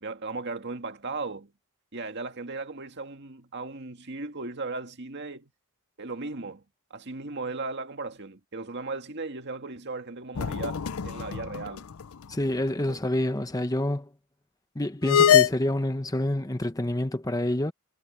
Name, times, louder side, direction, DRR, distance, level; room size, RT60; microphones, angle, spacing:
voice 1, 0.0-1.5 1.9-5.5 6.0-6.6 6.9-11.9 12.9-13.0, right 3 dB, 55° right, 2.0 m, -36 dB
sound 1, 10.3-12.0 12.3-12.4 15.0-15.5, left 8 dB, 75° left, 0.6 m, -23 dB
voice 2, 12.3-14.1 14.7-17.7, left 1 dB, 15° left, 1.1 m, -27 dB
head